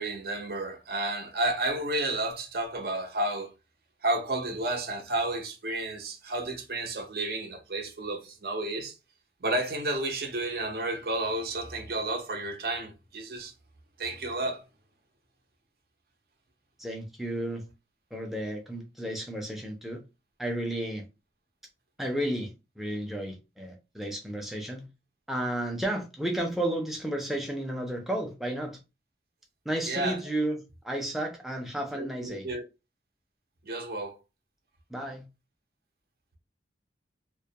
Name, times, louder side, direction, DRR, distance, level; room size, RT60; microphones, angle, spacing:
voice 1, 0.0-3.5 4.0-9.0 9.4-13.5 14.0-14.6 29.9-30.2 31.9-32.7 33.6-34.2, right 2 dB, 55° right, 0.6 m, -31 dB
voice 2, 16.8-17.6 18.1-20.0 20.4-21.0 22.0-22.5 22.8-24.9 25.3-28.8 29.7-32.5 34.9-35.2, right 1 dB, ahead, 0.4 m, -32 dB
2.2 x 2.0 x 2.7 m
head